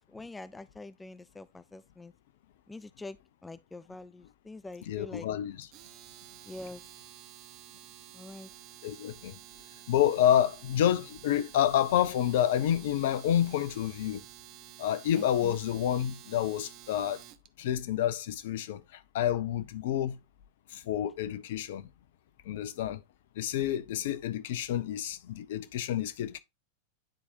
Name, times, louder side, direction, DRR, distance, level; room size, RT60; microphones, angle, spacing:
voice 1, 0.0-2.1 2.7-5.3 6.5-6.8 8.1-8.5 15.2-15.6, left 2 dB, 10° left, 0.3 m, -45 dB
voice 2, 4.9-5.7 8.8-9.3 9.9-14.2 14.8-17.2 17.6-20.2 20.7-21.9 22.5-23.0 23.4-26.4, left 11 dB, 55° left, 0.6 m, -29 dB
Domestic sounds home sounds, 5.6-17.5, right 13 dB, 40° right, 0.6 m, -51 dB
9.8 x 4.1 x 2.7 m
figure-of-eight pair, 90°, 0 cm